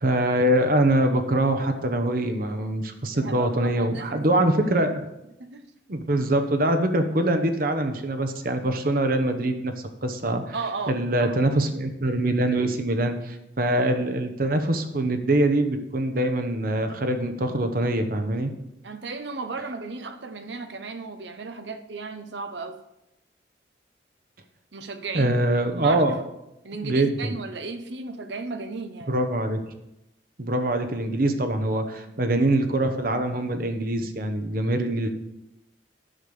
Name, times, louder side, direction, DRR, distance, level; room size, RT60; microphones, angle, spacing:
voice 1, 0.0-5.0 5.9-9.7 10.0-10.6 10.9-18.5 25.1-26.2 26.8-27.3 29.1-29.6 30.4-35.1, right 1 dB, 50° right, 7 dB, 1.0 m, -24 dB
voice 2, 3.1-4.6 5.4-5.7 10.5-11.3 18.8-22.8 24.7-25.4 25.8-26.0 26.6-29.1 32.1-32.2, right 4 dB, 80° right, 9 dB, 0.9 m, -35 dB
10.0 x 6.6 x 5.5 m, 0.89 s
head